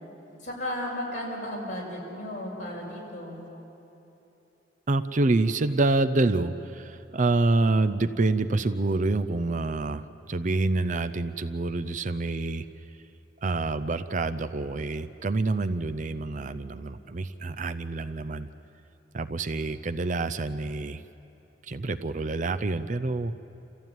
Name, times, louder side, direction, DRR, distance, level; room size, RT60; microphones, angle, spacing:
voice 1, 0.4-3.4, left 1 dB, 45° left, -3 dB, 5.9 m, -34 dB
voice 2, 4.9-12.6 13.4-18.5 19.1-21.0 21.7-23.3, right 2 dB, 45° right, 11 dB, 0.6 m, -27 dB
28.5 x 15.0 x 9.2 m, 3.0 s
head